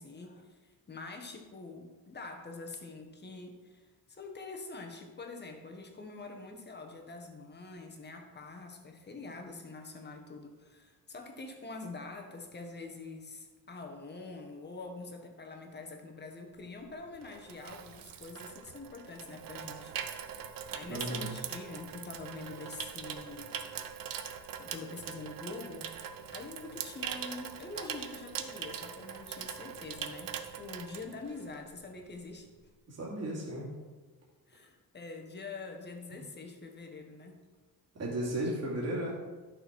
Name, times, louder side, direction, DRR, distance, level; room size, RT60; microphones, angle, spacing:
voice 1, 0.0-19.9 20.5-23.5 24.6-25.9 26.3-32.5 34.5-37.4, left 3 dB, 25° left, 4 dB, 1.4 m, -45 dB
Water tap faucet / Sink (filling or washing), 16.7-31.7 32.0-32.3, right 8 dB, 60° right, 0.8 m, -42 dB
voice 2, 20.9-21.3 32.9-33.7 38.0-39.1, right 1 dB, 40° right, -4 dB, 2.7 m, -34 dB
11.0 x 6.4 x 4.5 m, 1.3 s
cardioid pair, 130°, 38 cm